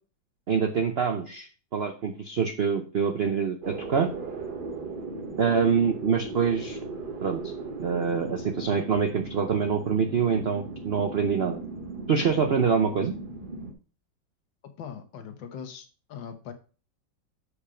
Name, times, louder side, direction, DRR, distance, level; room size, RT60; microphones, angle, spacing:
voice 1, 0.5-4.1 5.4-6.8 7.2-7.5 7.8-11.6 12.1-13.1, right 6 dB, 75° right, 6 dB, 0.5 m, -25 dB
sound 1, 3.6-13.7, right 3 dB, 35° right, 0.9 m, -37 dB
voice 2, 14.8-16.5, left 7 dB, 75° left, 7 dB, 1.7 m, -40 dB
7.1 x 5.0 x 4.9 m, 0.37 s
omnidirectional pair, 2.0 m